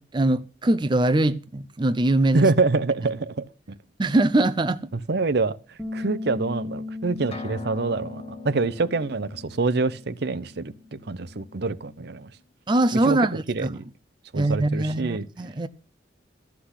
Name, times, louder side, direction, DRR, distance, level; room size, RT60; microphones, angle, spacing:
voice 1, 0.0-2.5 4.0-4.8 12.7-13.7 14.3-15.7, right 2 dB, 25° right, 0.5 m, -22 dB
voice 2, 2.3-3.8 5.1-12.3 13.1-13.8 14.3-15.3, right 3 dB, 65° right, 0.7 m, -26 dB
Bass guitar, 5.8-12.0, left 2 dB, 5° left, 1.2 m, -38 dB
sound 1, 7.3-11.1, left 3 dB, 35° left, 1.4 m, -43 dB
13.0 x 5.9 x 8.1 m
head